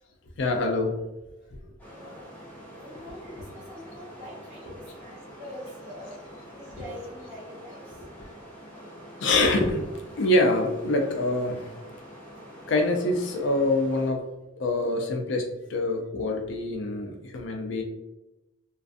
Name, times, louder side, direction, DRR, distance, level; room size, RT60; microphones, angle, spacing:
voice 1, 0.4-1.0 1.5-1.6 2.0-2.1 8.2-8.3 9.2-9.9 10.2-11.7 12.7-14.2 14.6-17.8, left 2 dB, 70° left, 3 dB, 0.4 m, -25 dB
sound 1, 1.8-14.1, equal, 10° left, 0.6 m, -46 dB
voice 2, 1.8-2.3 2.7-6.2 6.5-8.0, left 1 dB, 35° right, -9 dB, 1.4 m, -44 dB
2.4 x 2.3 x 2.4 m, 0.96 s
head